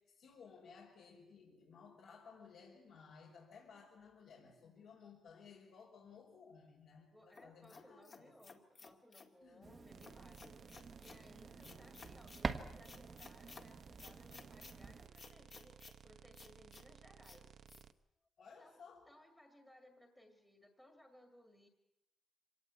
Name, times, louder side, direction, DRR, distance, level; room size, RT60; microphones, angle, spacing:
voice 1, 0.0-8.5 9.4-9.7 11.5-11.9 18.4-19.1, left 5 dB, 70° left, -2 dB, 5.2 m, -59 dB
voice 2, 7.1-17.6 18.6-21.7, left 1 dB, 5° left, 3 dB, 2.0 m, -64 dB
sound 1, 7.4-9.3 10.0-11.2 11.6-12.5 12.8-13.7 14.0-14.7 15.2-16.0 16.3-16.8 17.2-17.4 17.7-17.8, left 4 dB, 30° left, 1.9 m, -57 dB
sound 2, 9.6-15.1, right 4 dB, 30° right, 1.2 m, -47 dB
sound 3, 9.9-17.9, right 8 dB, 55° right, 0.8 m, -60 dB
25.0 x 18.0 x 8.4 m, 0.94 s
cardioid pair, 170°, 0 cm